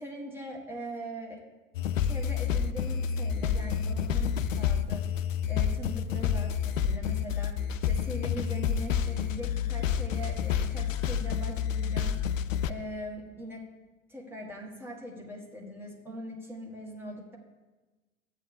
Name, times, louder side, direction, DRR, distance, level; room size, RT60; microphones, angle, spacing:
voice 1, 0.0-1.4 2.0-5.0 5.5-7.5 7.8-12.2 12.6-13.6 14.1-17.4, equal, 5° right, -1 dB, 1.6 m, -41 dB
sound 1, 1.7-12.7, left 8 dB, 70° left, 0.5 m, -29 dB
13.5 x 8.3 x 2.4 m, 1.2 s
figure-of-eight pair, 90°, 42 cm